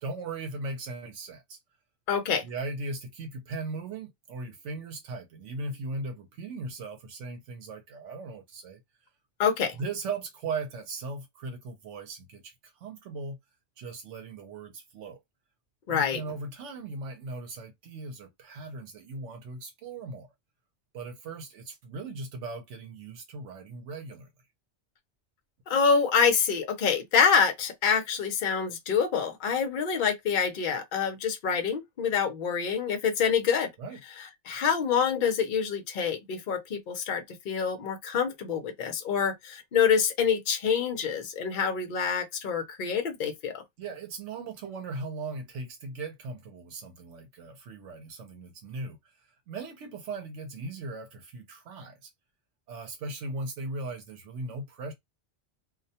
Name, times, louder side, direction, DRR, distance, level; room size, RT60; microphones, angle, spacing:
voice 1, 0.0-1.6 2.4-8.8 9.8-13.4 13.8-15.2 15.9-20.3 20.9-24.3 33.8-34.0 43.8-52.1 52.7-54.9, right 3 dB, 85° right, 0.9 m, -38 dB
voice 2, 2.1-2.4 9.4-9.8 15.9-16.2 25.7-33.7 34.5-43.6, left 6 dB, 55° left, 0.7 m, -26 dB
2.3 x 2.1 x 2.7 m
omnidirectional pair, 1.2 m